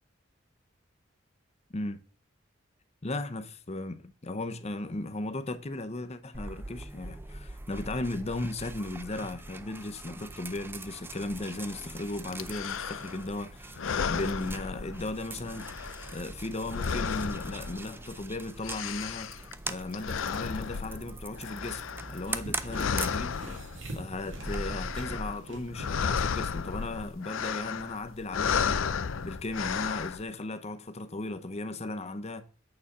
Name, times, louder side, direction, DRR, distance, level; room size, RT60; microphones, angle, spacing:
voice 1, 3.0-15.7 16.1-19.3 19.7-23.4 23.9-28.8 29.2-32.4, left 2 dB, 35° left, 0.7 m, -36 dB
sound 1, 6.3-24.6, right 2 dB, 10° right, 0.5 m, -42 dB
sound 2, 12.3-13.3 13.7-15.3 15.5-18.2 18.4-22.4 22.7-24.0 24.3-25.4 25.6-30.2, left 6 dB, 90° left, 0.5 m, -33 dB
sound 3, 22.3-26.8 27.1-27.2, right 1 dB, 75° right, 2.2 m, -41 dB
8.7 x 4.3 x 5.4 m
head